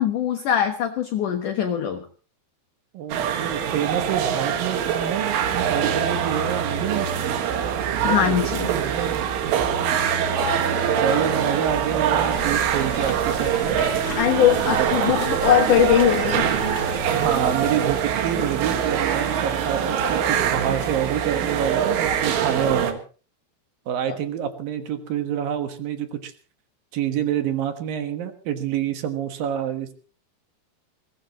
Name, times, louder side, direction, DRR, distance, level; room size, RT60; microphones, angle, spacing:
voice 1, 0.0-2.0 8.0-8.7 14.2-16.5, left 10 dB, 70° left, 6 dB, 1.9 m, -21 dB
voice 2, 2.9-5.4 5.7-7.6 7.9-8.4 8.6-9.3 10.9-13.8 14.7-14.9 17.1-23.0 23.9-26.3 26.9-29.9, right 9 dB, 60° right, 8 dB, 2.7 m, -27 dB
sound 1, 3.1-22.9, right 8 dB, 90° right, 4.3 m, -24 dB
sound 2, 12.3-17.7, left 4 dB, 45° left, 1.7 m, -37 dB
22.0 x 19.5 x 3.1 m, 0.38 s
omnidirectional pair, 5.5 m